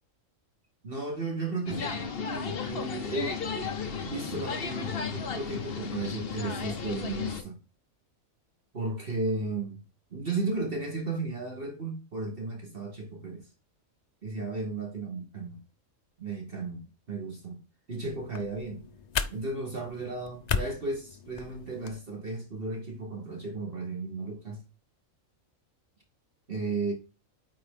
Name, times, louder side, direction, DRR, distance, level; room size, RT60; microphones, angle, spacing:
voice 1, 0.8-3.4 4.0-7.6 8.7-9.8 10.1-13.5 14.2-15.6 16.2-17.6 17.9-18.8 19.3-24.6 26.5-26.9, right 3 dB, 45° right, 1.4 m, -34 dB
sound 1, 1.7-7.4, left 5 dB, 45° left, 1.1 m, -34 dB
sound 2, 18.0-22.0, left 6 dB, 75° left, 0.3 m, -36 dB
9.0 x 3.8 x 3.6 m
omnidirectional pair, 1.4 m